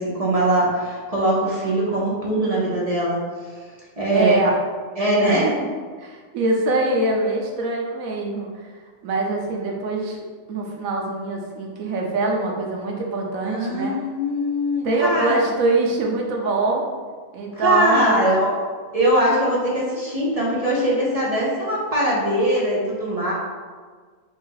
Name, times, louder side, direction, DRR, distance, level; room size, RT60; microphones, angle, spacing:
voice 1, 0.0-3.2 4.0-4.4 5.0-5.4 13.4-15.5 17.6-18.5 18.9-23.3, right 1 dB, 35° right, -5 dB, 0.7 m, -21 dB
voice 2, 4.1-4.5 5.2-5.7 6.0-8.5 9.0-10.2 10.5-13.9 14.8-16.8 17.3-18.3, right 2 dB, 90° right, 0 dB, 1.2 m, -23 dB
4.1 x 2.6 x 3.8 m, 1.5 s
omnidirectional pair, 1.4 m